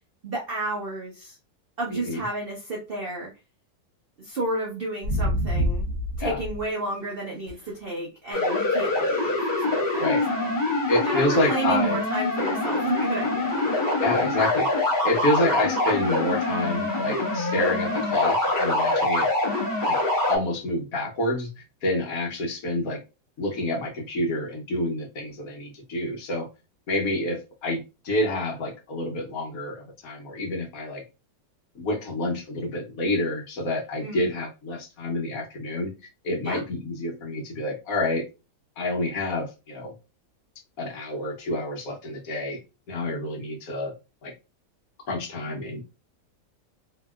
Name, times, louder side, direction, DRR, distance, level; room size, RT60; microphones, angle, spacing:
voice 1, 0.2-1.4 1.8-3.3 4.2-5.9 6.2-10.6 11.0-13.7 34.0-34.3 36.4-36.6, right 2 dB, 75° right, -2 dB, 0.5 m, -31 dB
voice 2, 1.9-2.2 6.2-6.4 10.0-10.2 10.9-12.0 14.0-19.3 19.8-20.0 20.3-21.5 21.8-23.0 23.4-26.5 26.9-31.0 31.7-35.9 36.2-38.2 38.8-39.9 40.8-42.6 42.9-43.9 44.2-44.3 45.1-45.8, left 1 dB, 65° left, 0 dB, 1.1 m, -28 dB
sound 1, 5.0-6.6 7.5-7.7 13.5-13.6, equal, 55° right, 0.9 m, -26 dB
sound 2, 8.3-20.4, left 2 dB, 35° left, 1.2 m, -25 dB
2.8 x 2.7 x 2.3 m, 0.29 s
omnidirectional pair, 1.9 m